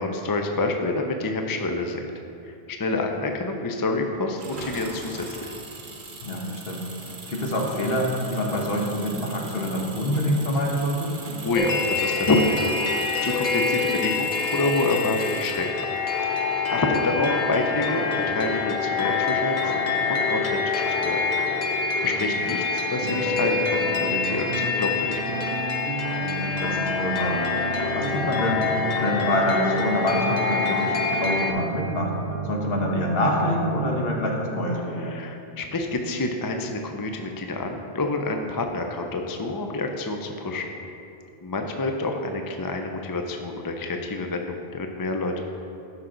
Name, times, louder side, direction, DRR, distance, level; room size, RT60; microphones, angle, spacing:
voice 1, 0.0-2.0 2.5-5.6 11.4-12.5 12.8-15.7 16.3-21.2 21.5-25.2 35.1-40.7 41.4-45.4, left 2 dB, 30° left, 4 dB, 0.5 m, -28 dB
Engine, 4.4-16.0, right 3 dB, 50° right, 1.1 m, -40 dB
voice 2, 6.2-11.2 22.0-22.4 26.4-27.4 27.7-32.1 32.4-35.2, left 1 dB, 65° left, -1 dB, 1.4 m, -26 dB
sound 1, 11.5-31.5, left 4 dB, 45° left, 0.9 m, -26 dB
sound 2, 23.0-34.1, right 6 dB, 70° right, 0.8 m, -33 dB
12.5 x 5.6 x 3.9 m, 2.7 s
omnidirectional pair, 1.1 m